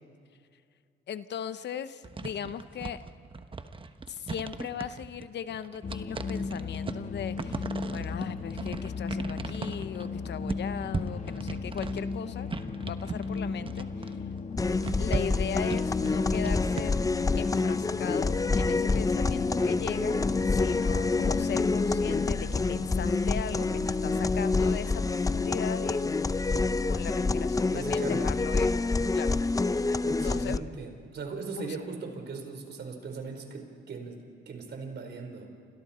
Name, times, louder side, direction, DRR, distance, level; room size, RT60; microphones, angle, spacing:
voice 1, 1.1-3.0 4.1-12.5 12.8-14.2 15.0-17.0 17.4-26.0 26.9-28.7 29.1-29.4 29.7-29.8 30.1-30.6 31.5-31.8, left 8 dB, 60° left, 12 dB, 0.9 m, -38 dB
sound 1, 2.0-16.8, right 4 dB, 25° right, 1.2 m, -38 dB
sound 2, 5.8-24.3, left 4 dB, 40° left, 1.4 m, -35 dB
sound 3, 14.6-30.6, left 3 dB, 15° left, 0.6 m, -27 dB
voice 2, 27.7-28.3 30.0-35.5, right 4 dB, 60° right, 4 dB, 4.3 m, -39 dB
29.0 x 27.0 x 4.4 m, 2.3 s
cardioid pair, 90°, 20 cm